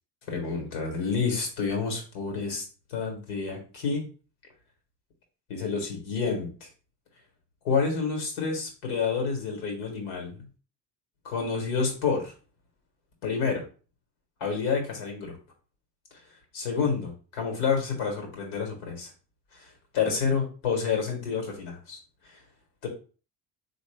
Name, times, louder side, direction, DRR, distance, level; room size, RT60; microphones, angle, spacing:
voice 1, 0.3-2.6 2.9-4.1 5.5-6.7 7.6-10.5 11.2-12.3 13.2-13.6 14.4-15.4 16.5-19.1 19.5-22.0 22.8-22.9, left 5 dB, 90° left, 2 dB, 1.4 m, -29 dB
3.8 x 2.5 x 3.3 m, 0.37 s
supercardioid pair, 70°, 48 cm